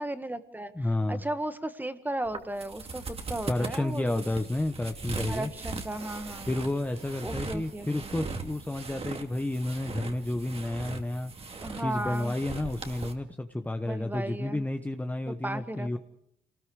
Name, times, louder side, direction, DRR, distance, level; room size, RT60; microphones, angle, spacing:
voice 1, 0.0-4.2 5.3-6.5 7.2-8.1 11.6-12.3 13.8-14.7 15.3-16.0, right 1 dB, 10° right, 10 dB, 1.6 m, -35 dB
voice 2, 0.7-1.2 3.5-5.5 6.5-11.3 11.8-16.0, left 1 dB, 10° left, 6 dB, 1.0 m, -31 dB
sound 1, 2.2-13.1, right 3 dB, 35° right, 2.5 m, -40 dB
27.5 x 20.0 x 4.8 m, 0.74 s
cardioid pair, 105°, 18 cm